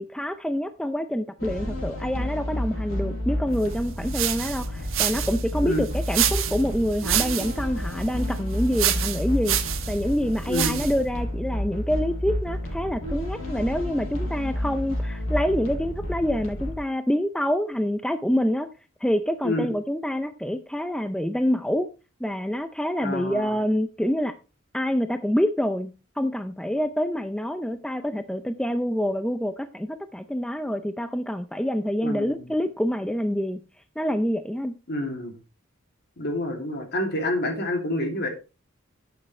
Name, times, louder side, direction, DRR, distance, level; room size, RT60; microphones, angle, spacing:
voice 1, 0.0-9.6 9.9-18.7 19.0-21.9 22.2-24.3 24.7-33.6 34.0-34.8, equal, 5° left, 0.4 m, -26 dB
sound 1, 1.4-16.7, equal, 90° left, 5.2 m, -30 dB
sound 2, 3.7-11.1, right 10 dB, 75° right, 1.1 m, -29 dB
voice 2, 10.5-10.8 19.4-19.7 23.0-23.6 32.0-32.5 34.9-35.3 36.2-38.3, left 1 dB, 55° left, 2.7 m, -28 dB
10.5 x 8.7 x 3.2 m
head